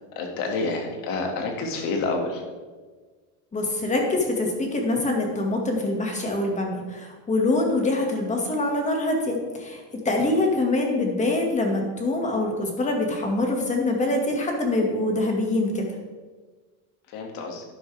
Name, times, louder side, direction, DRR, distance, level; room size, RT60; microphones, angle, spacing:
voice 1, 0.2-2.4 17.1-17.6, left 3 dB, 65° left, 2 dB, 2.3 m, -28 dB
voice 2, 3.5-15.9, left 2 dB, 20° left, 1 dB, 2.0 m, -24 dB
11.5 x 10.5 x 3.5 m, 1.4 s
cardioid pair, 145°, 37 cm